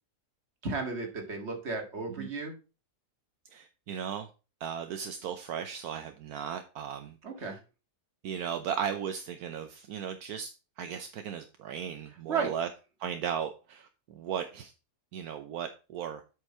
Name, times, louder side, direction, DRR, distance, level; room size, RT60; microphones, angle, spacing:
voice 1, 0.6-2.5 7.2-7.6 12.3-12.5, right 4 dB, 45° right, 2.0 m, -34 dB
voice 2, 3.5-4.3 4.6-7.2 8.2-10.5 10.8-12.7 13.0-14.7 15.1-16.2, right 8 dB, 75° right, 1.2 m, -36 dB
8.1 x 5.5 x 4.3 m
omnidirectional pair, 1.7 m